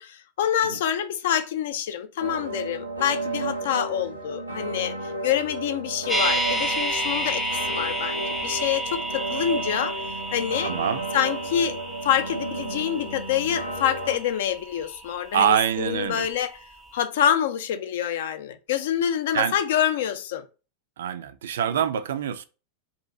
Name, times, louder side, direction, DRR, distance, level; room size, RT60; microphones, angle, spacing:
voice 1, 0.0-10.0 10.3-10.7 11.1-16.6 16.9-20.4, left 10 dB, 55° left, 0.3 m, -26 dB
sound 1, 2.2-14.2, right 2 dB, 85° right, 0.8 m, -33 dB
sound 2, 6.1-16.1 16.4-16.5, right 1 dB, ahead, 0.6 m, -31 dB
voice 2, 10.6-11.1 15.3-16.3 19.3-19.5 21.0-22.4, right 9 dB, 60° right, 0.3 m, -24 dB
2.7 x 2.5 x 3.6 m
figure-of-eight pair, 90°, 0 cm